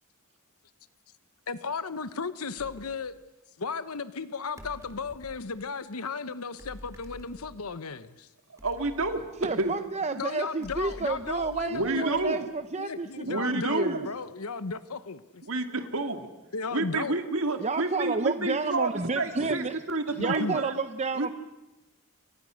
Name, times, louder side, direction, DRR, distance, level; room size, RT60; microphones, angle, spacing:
voice 1, 1.5-3.2 3.6-8.3 10.1-12.4 12.8-15.4 16.5-17.2 20.2-20.6, left 4 dB, 80° left, 13 dB, 1.0 m, -35 dB
sound 1, 2.6-3.0 4.6-5.5 6.6-7.8 8.6-9.9 10.6-12.5, equal, 15° right, 3.6 m, -48 dB
voice 2, 8.6-9.8 11.7-12.5 13.2-14.1 15.5-16.3 16.7-20.7 21.2-21.3, right 2 dB, 65° right, 7 dB, 2.4 m, -29 dB
voice 3, 9.4-14.0 17.6-19.8 20.2-21.3, right 3 dB, 30° right, 10 dB, 0.8 m, -30 dB
29.0 x 24.5 x 6.4 m, 1.0 s
head